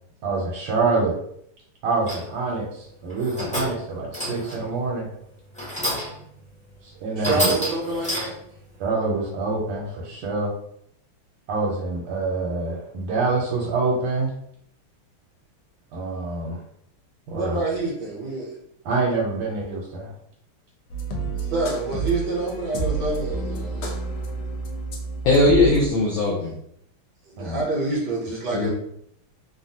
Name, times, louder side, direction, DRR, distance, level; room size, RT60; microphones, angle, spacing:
voice 1, 0.2-1.1 1.8-5.1 6.8-7.5 8.8-10.5 11.5-14.3 15.9-16.6 17.3-17.6 18.8-20.1 27.4-27.6, right 3 dB, 80° right, -3 dB, 1.5 m, -26 dB
sound 1, 2.1-2.4 3.1-3.8 4.1-4.7 5.5-6.3 6.7-6.8 7.2-8.5, equal, 10° left, 0.4 m, -29 dB
voice 2, 7.2-8.3 17.3-18.5 21.4-23.9 27.2-28.7, right 2 dB, 65° right, -4 dB, 1.2 m, -27 dB
sound 2, 20.9-25.9, right 4 dB, 90° left, 0.9 m, -29 dB
voice 3, 25.2-26.5 28.5-28.7, left 2 dB, 75° left, -4 dB, 1.2 m, -19 dB
3.4 x 2.2 x 2.7 m, 0.71 s
omnidirectional pair, 2.4 m